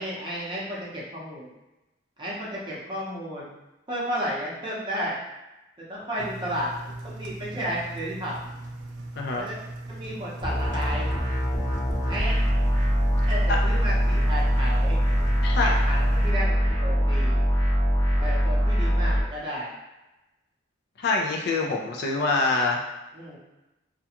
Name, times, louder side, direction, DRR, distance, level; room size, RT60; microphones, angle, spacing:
voice 1, 0.0-1.5 2.2-3.5 3.9-5.2 5.8-8.3 9.4-9.6 9.9-11.2 12.1-12.3 13.3-15.0 15.6-17.4 18.2-19.7 23.1-23.4, equal, 25° right, -6 dB, 0.7 m, -33 dB
Engine, 6.2-16.3, right 2 dB, 75° right, 0.4 m, -39 dB
voice 2, 9.2-9.5 13.5-13.6 15.4-15.8 21.0-22.8, left 3 dB, 55° left, 0 dB, 0.4 m, -25 dB
sound 1, 10.4-19.2, equal, 20° left, 0.8 m, -23 dB
2.4 x 2.2 x 2.8 m, 1.0 s
head